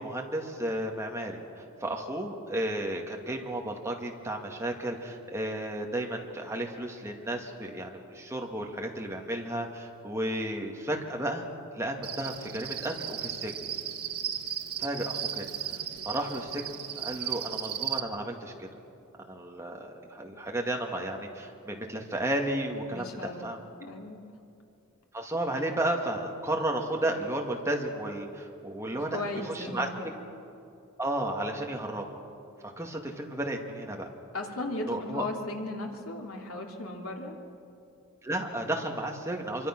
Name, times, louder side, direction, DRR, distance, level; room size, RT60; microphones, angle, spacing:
voice 1, 0.0-11.5 11.7-13.5 14.8-15.4 16.1-16.6 16.9-18.7 19.3-23.6 25.1-30.1 31.0-32.2 32.6-34.1 34.9-35.3 38.2-39.7, right 1 dB, 15° right, 1 dB, 2.1 m, -33 dB
Cricket, 12.0-18.0, right 10 dB, 80° right, 1.5 m, -35 dB
voice 2, 22.9-23.5 23.8-24.2 28.9-30.1 34.3-37.4, left 2 dB, 70° left, 1 dB, 3.0 m, -36 dB
26.0 x 24.0 x 6.1 m, 2.6 s
head